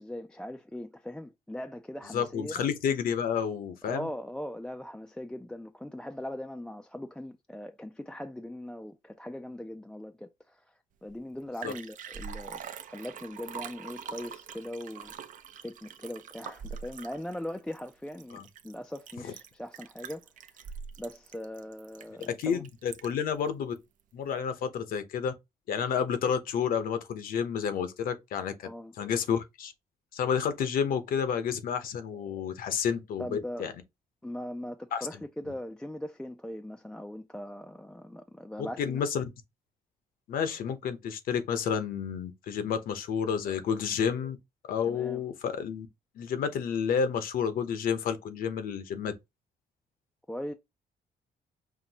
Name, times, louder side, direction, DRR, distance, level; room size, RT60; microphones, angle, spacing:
voice 1, 0.0-2.6 3.8-10.6 11.0-15.2 15.6-20.7 21.0-22.6 28.6-28.9 33.2-33.7 34.2-39.0 44.9-45.3 50.3-50.5, left 1 dB, 5° left, 0.3 m, -40 dB
voice 2, 2.1-4.1 11.6-11.7 18.3-18.4 22.2-23.7 24.1-25.3 25.7-28.7 29.0-29.7 30.1-33.7 34.9-35.1 38.8-39.2 40.3-44.4 44.7-45.9 46.2-49.1, left 7 dB, 75° left, 0.9 m, -30 dB
Liquid, 11.1-11.2 11.4-23.3 23.8-23.9, right 7 dB, 60° right, 0.6 m, -44 dB
5.8 x 2.6 x 2.8 m
cardioid pair, 115°, 15 cm